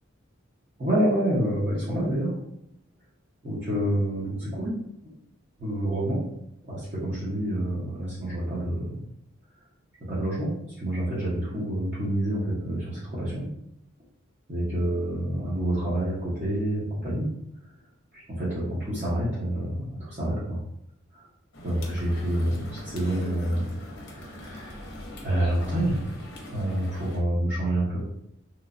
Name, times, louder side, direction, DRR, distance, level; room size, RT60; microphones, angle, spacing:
voice 1, 0.8-2.3 3.4-4.7 5.6-6.2 6.6-8.9 10.1-10.5 10.8-13.5 14.5-17.3 18.1-20.6 21.1-21.3 21.6-23.7 24.0-24.8 25.2-26.0 26.5-28.0, right 1 dB, 35° right, -11 dB, 0.8 m, -28 dB
sound 1, 21.5-27.2, left 1 dB, 55° left, 0.6 m, -41 dB
2.9 x 2.2 x 2.4 m, 0.77 s
head